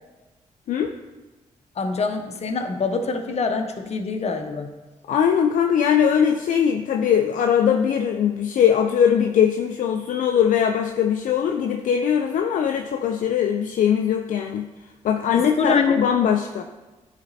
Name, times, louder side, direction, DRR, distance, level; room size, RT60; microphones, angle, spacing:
voice 1, 1.8-4.7 15.3-16.0, left 4 dB, 50° left, 5 dB, 0.8 m, -24 dB
voice 2, 5.1-14.7 15.0-16.6, left 8 dB, 70° left, 4 dB, 0.4 m, -21 dB
9.8 x 4.1 x 2.7 m, 1.2 s
cardioid pair, 60°, 14 cm